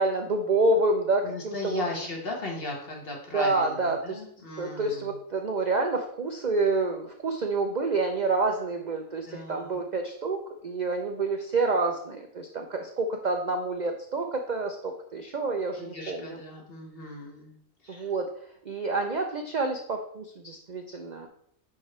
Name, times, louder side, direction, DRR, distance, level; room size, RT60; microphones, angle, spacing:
voice 1, 0.0-1.8 3.3-4.2 4.6-10.4 10.6-16.4 17.9-18.3 18.7-21.3, right 3 dB, 45° right, 4 dB, 0.6 m, -28 dB
voice 2, 1.2-5.1 9.3-9.8 15.8-17.5 17.8-18.1, left 2 dB, 40° left, 0 dB, 1.8 m, -37 dB
9.9 x 4.8 x 3.3 m, 0.66 s
omnidirectional pair, 1.5 m